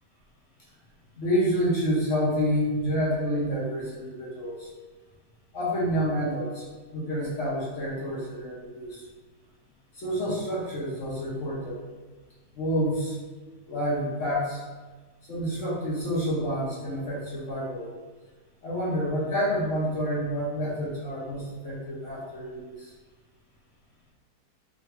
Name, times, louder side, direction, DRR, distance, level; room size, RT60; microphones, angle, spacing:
voice 1, 1.1-4.7 5.5-6.6 6.9-9.1 9.9-11.8 12.5-13.2 13.7-14.6 15.3-17.9 18.6-22.9, equal, 50° left, -6 dB, 1.2 m, -28 dB
3.6 x 2.7 x 3.3 m, 1.3 s
omnidirectional pair, 1.8 m